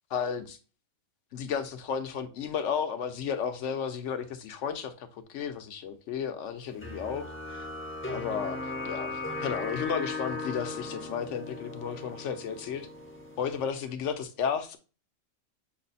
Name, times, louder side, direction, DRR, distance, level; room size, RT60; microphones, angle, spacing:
voice 1, 0.1-0.6 1.3-7.7 8.1-12.9 13.4-14.8, left 7 dB, 70° left, 1.0 m, -33 dB
sound 1, 6.8-13.7, left 2 dB, 15° left, 0.5 m, -37 dB
6.1 x 2.1 x 4.1 m
omnidirectional pair, 1.4 m